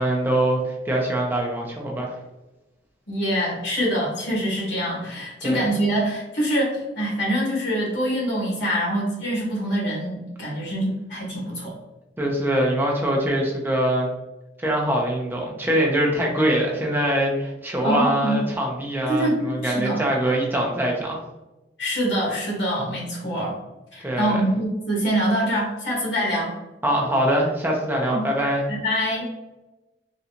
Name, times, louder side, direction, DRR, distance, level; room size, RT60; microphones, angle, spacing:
voice 1, 0.0-2.2 5.4-5.7 12.2-14.1 14.6-21.2 24.0-24.5 26.8-28.6, right 1 dB, 10° right, -1 dB, 0.6 m, -23 dB
voice 2, 3.1-11.7 17.8-18.4 19.1-20.0 21.8-23.6 23.9-26.5 28.1-28.2 28.7-29.3, equal, 85° left, -4 dB, 1.5 m, -25 dB
3.7 x 2.3 x 2.8 m, 1.0 s
head